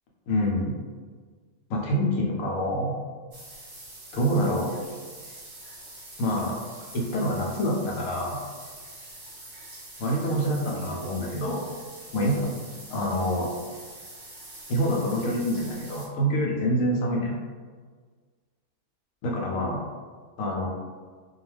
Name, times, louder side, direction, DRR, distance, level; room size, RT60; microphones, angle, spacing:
voice 1, 0.3-0.7 1.7-3.0 4.1-4.7 6.2-6.5 6.9-8.4 10.0-11.7 12.1-12.5 12.9-13.5 14.7-17.4 19.2-19.8 20.4-20.7, equal, 90° left, -2 dB, 1.0 m, -26 dB
sound 1, 3.3-16.1, right 1 dB, 45° right, 0.4 m, -45 dB
2.3 x 2.3 x 3.1 m, 1.5 s
omnidirectional pair, 1.4 m